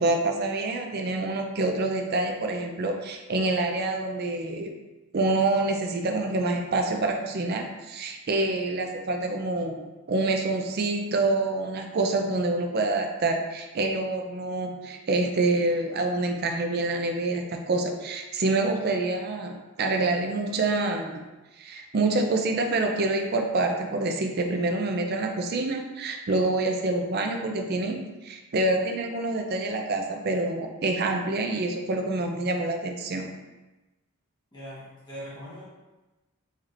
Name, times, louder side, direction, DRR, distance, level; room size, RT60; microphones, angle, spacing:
voice 1, 0.0-4.7 5.1-21.2 21.6-33.3, right 2 dB, 50° right, 4 dB, 0.4 m, -27 dB
voice 2, 34.5-35.6, equal, 20° left, -10 dB, 1.1 m, -41 dB
4.2 x 3.3 x 2.5 m, 1.1 s
head